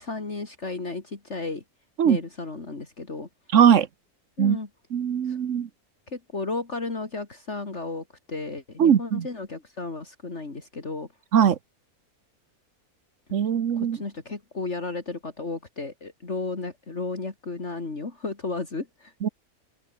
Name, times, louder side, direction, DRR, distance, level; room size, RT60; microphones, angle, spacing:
voice 1, 0.0-1.6 2.0-3.3 4.4-4.7 5.3-5.4 6.1-11.1 13.7-19.1, left 3 dB, 50° left, 3.1 m, -33 dB
voice 2, 3.5-3.9 4.4-4.6 4.9-5.7 8.8-9.3 11.3-11.6 13.3-14.0 19.2-19.3, right 8 dB, 60° right, 1.3 m, -20 dB
open air
omnidirectional pair, 1.6 m